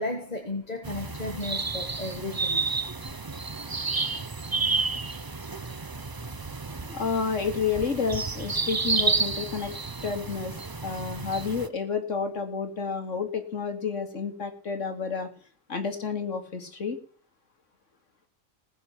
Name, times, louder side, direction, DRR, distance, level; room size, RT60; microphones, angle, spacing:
voice 1, 0.0-3.0, left 2 dB, 30° left, 3 dB, 1.7 m, -34 dB
sound 1, 0.8-11.7, right 4 dB, 25° right, 0.5 m, -31 dB
voice 2, 6.8-9.7 10.0-15.3 15.7-17.0, left 5 dB, 70° left, 6 dB, 2.7 m, -30 dB
20.0 x 7.7 x 5.9 m, 0.43 s
omnidirectional pair, 1.4 m